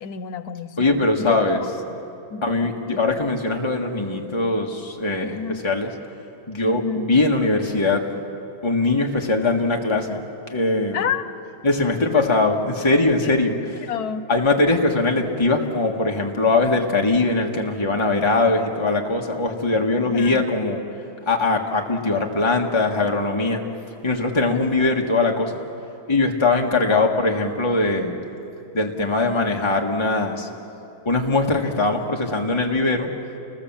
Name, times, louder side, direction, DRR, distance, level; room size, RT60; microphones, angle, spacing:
voice 1, 0.0-1.7 2.3-2.4 5.3-5.7 6.6-7.1 10.9-11.2 12.0-12.2 13.2-13.4 13.8-14.3 20.0-20.4 24.5-24.7 26.9-27.1, left 7 dB, 85° left, 12 dB, 1.4 m, -29 dB
voice 2, 0.8-1.6 2.4-5.9 6.5-6.8 7.1-8.0 8.6-10.2 10.5-11.1 11.6-13.6 14.3-20.8 21.3-23.6 24.0-25.6 26.1-28.2 28.7-30.5 31.1-33.1, left 2 dB, 20° left, 1 dB, 1.6 m, -21 dB
29.5 x 20.0 x 7.4 m, 2.7 s
omnidirectional pair, 1.6 m